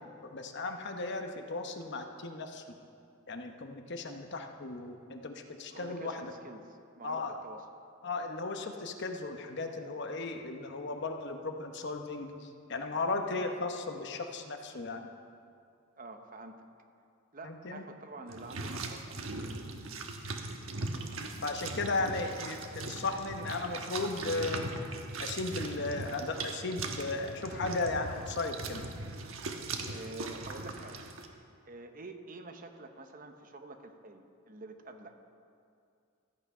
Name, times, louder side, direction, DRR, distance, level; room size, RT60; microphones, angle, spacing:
voice 1, 0.0-2.6 3.3-6.3 7.0-7.3 8.0-15.1 17.4-17.8 21.4-24.7 25.2-28.8, left 3 dB, 55° left, 5 dB, 0.9 m, -36 dB
voice 2, 5.7-7.7 13.3-13.5 16.0-16.7 17.3-19.2 29.9-31.0 31.7-35.1, right 2 dB, 40° right, 6 dB, 0.8 m, -47 dB
sound 1, 18.3-31.3, right 3 dB, 75° right, 1.1 m, -40 dB
13.5 x 8.6 x 5.5 m, 2.4 s
head